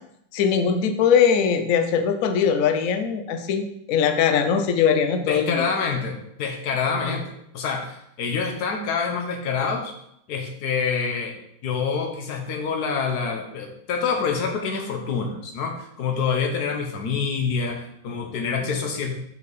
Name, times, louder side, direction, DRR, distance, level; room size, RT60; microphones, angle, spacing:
voice 1, 0.3-5.7, left 7 dB, 85° left, 7 dB, 0.7 m, -21 dB
voice 2, 5.2-9.9 10.3-19.2, left 5 dB, 60° left, 3 dB, 1.3 m, -27 dB
5.8 x 4.6 x 4.0 m, 0.74 s
omnidirectional pair, 2.1 m